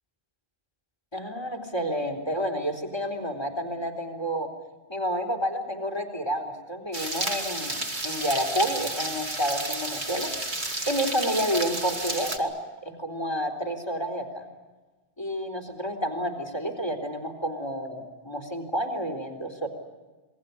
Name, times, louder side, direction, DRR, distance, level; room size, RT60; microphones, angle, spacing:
voice 1, 1.1-4.5 4.9-10.3 10.9-12.5 12.8-14.4 15.2-19.7, equal, 25° left, 5 dB, 3.9 m, -30 dB
sound 1, 6.9-12.4, right 2 dB, 45° right, 2.3 m, -31 dB
28.0 x 21.5 x 8.5 m, 1.2 s
omnidirectional pair, 1.1 m